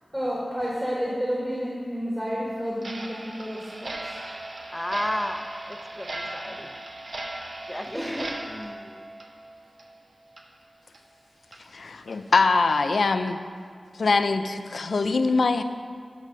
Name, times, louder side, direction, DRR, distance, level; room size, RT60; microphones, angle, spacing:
voice 1, 0.1-4.1 7.9-8.3, equal, 10° right, -6 dB, 1.8 m, -30 dB
Clock, 2.8-10.0 10.3-10.4 10.9-11.0 11.5-11.6 12.1-12.2 12.7-12.8 13.3-13.4, right 2 dB, 60° right, 0.9 m, -38 dB
voice 2, 4.7-6.8 7.7-9.1, left 1 dB, 15° left, 5 dB, 0.7 m, -33 dB
voice 3, 11.7-13.4 14.0-15.6, left 3 dB, 80° left, 9 dB, 0.4 m, -23 dB
10.5 x 4.8 x 5.5 m, 2.1 s
cardioid pair, 50°, 0 cm